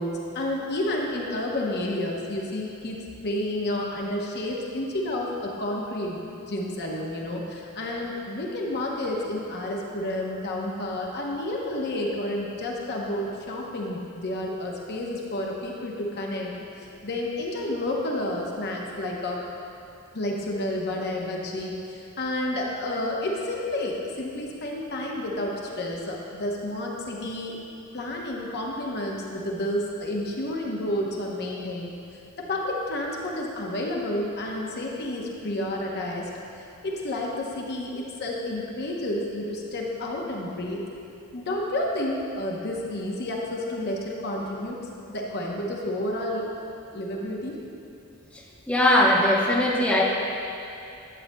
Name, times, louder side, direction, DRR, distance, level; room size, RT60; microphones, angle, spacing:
voice 1, 0.0-3.0 3.2-6.2 6.5-16.5 16.8-19.4 20.1-27.6 27.9-36.3 36.5-40.8 41.3-44.8 45.1-46.5 46.9-47.6, left 1 dB, 50° left, -1 dB, 0.8 m, -30 dB
voice 2, 48.7-50.0, left 1 dB, 5° left, -5 dB, 0.8 m, -20 dB
11.0 x 8.4 x 2.2 m, 2.7 s
head